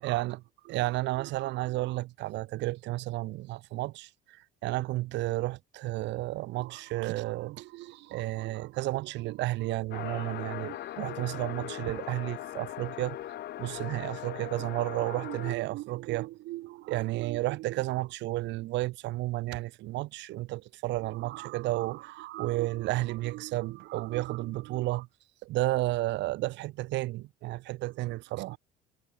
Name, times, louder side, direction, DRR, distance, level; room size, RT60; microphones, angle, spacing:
voice 1, 0.0-4.4 4.6-13.2 13.6-25.1 25.4-28.6, right 18 dB, 65° right, 0.4 m, -32 dB
sound 1, 9.9-15.6, left 13 dB, 55° left, 0.6 m, -40 dB
cardioid pair, 95°, 20 cm